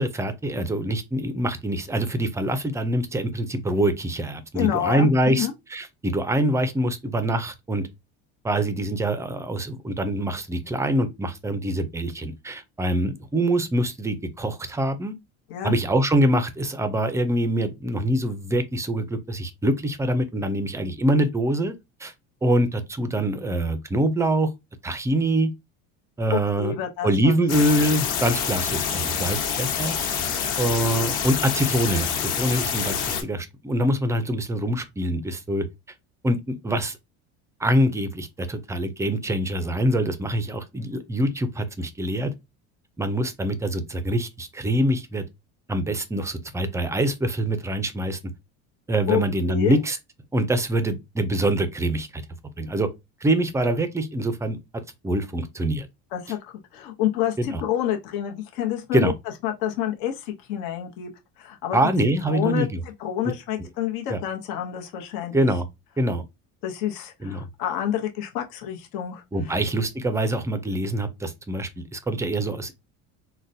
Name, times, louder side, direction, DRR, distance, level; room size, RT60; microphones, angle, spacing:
voice 1, 0.0-7.9 8.4-15.1 15.6-21.7 22.0-22.1 22.4-24.5 24.8-25.5 26.2-26.7 27.0-30.0 30.6-35.7 36.2-37.0 37.6-42.3 43.0-45.2 45.7-48.2 48.9-50.0 50.3-52.2 52.6-52.9 53.2-54.6 55.0-55.9 57.4-57.6 58.9-59.1 61.7-62.8 64.1-64.2 65.3-65.7 66.0-66.2 67.2-67.5 69.3-72.7, right 1 dB, 10° right, 0.3 m, -24 dB
voice 2, 4.5-5.5 15.5-15.7 26.3-27.3 49.1-49.8 56.1-59.1 59.4-61.1 61.4-61.8 62.3-62.7 63.0-65.5 66.6-69.6, left 11 dB, 80° left, 0.9 m, -28 dB
sound 1, 27.5-33.2, left 7 dB, 60° left, 1.2 m, -26 dB
3.9 x 2.1 x 2.6 m
cardioid pair, 120°, 34 cm